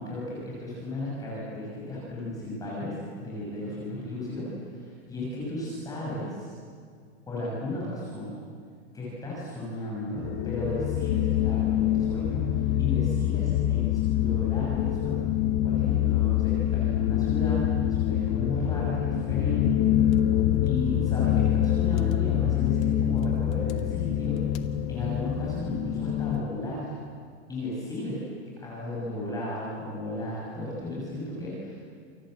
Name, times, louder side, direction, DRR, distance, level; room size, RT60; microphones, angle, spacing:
voice 1, 0.0-6.5 7.3-8.4 8.9-15.2 15.6-19.9 20.6-24.4 24.9-26.9 27.5-31.8, left 1 dB, 10° left, -6 dB, 6.4 m, -34 dB
sound 1, 10.2-26.4, left 11 dB, 40° left, 1.4 m, -25 dB
29.0 x 26.5 x 7.8 m, 2.1 s
supercardioid pair, 170°, 36 cm